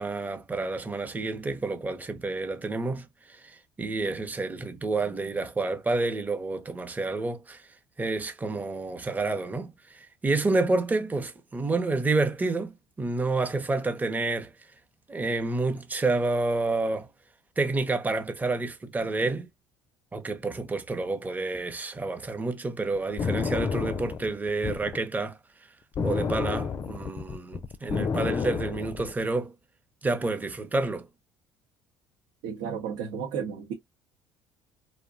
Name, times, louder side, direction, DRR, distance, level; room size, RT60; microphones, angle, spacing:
voice 1, 0.0-7.6 8.0-14.5 15.1-17.1 17.6-19.5 20.1-25.4 26.0-29.5 30.0-31.1, right 3 dB, 20° right, 0.6 m, -29 dB
sound 1, 23.0-25.0 25.9-29.2, left 5 dB, 35° left, 0.4 m, -30 dB
voice 2, 32.4-33.7, right 7 dB, 80° right, 0.7 m, -33 dB
2.6 x 2.1 x 2.5 m
hypercardioid pair, 70°, 9 cm